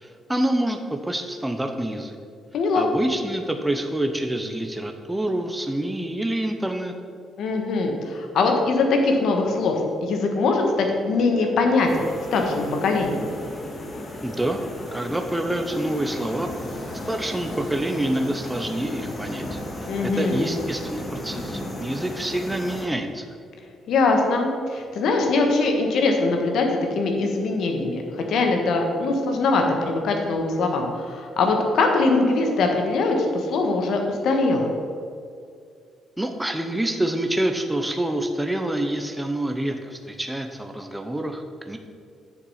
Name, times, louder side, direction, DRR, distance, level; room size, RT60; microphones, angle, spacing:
voice 1, 0.0-2.2 2.7-6.9 14.2-14.6 14.9-16.5 17.1-19.6 20.0-23.3 36.2-41.8, right 1 dB, 10° right, 4 dB, 0.7 m, -27 dB
voice 2, 2.5-2.9 7.4-9.7 10.0-13.3 19.9-20.6 23.9-34.7, left 3 dB, 70° left, 3 dB, 1.4 m, -22 dB
sound 1, 11.9-22.9, left 1 dB, 35° left, 1.8 m, -35 dB
7.2 x 6.9 x 5.7 m, 2.3 s
cardioid pair, 90°, 0 cm